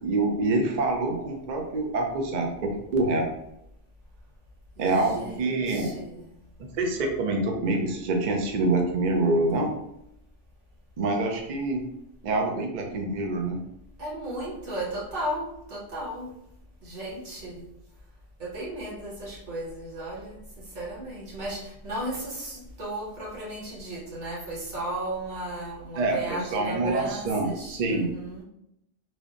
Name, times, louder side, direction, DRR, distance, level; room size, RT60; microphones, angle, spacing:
voice 1, 0.0-3.3 4.8-5.9 6.8-9.7 11.0-11.8 12.2-13.6 26.0-28.1, right 2 dB, 60° right, 2 dB, 0.5 m, -26 dB
voice 2, 4.8-6.4 14.0-16.3 16.8-17.7 18.4-28.4, right 1 dB, 80° right, -6 dB, 1.4 m, -35 dB
3.1 x 2.0 x 2.4 m, 0.81 s
omnidirectional pair, 1.2 m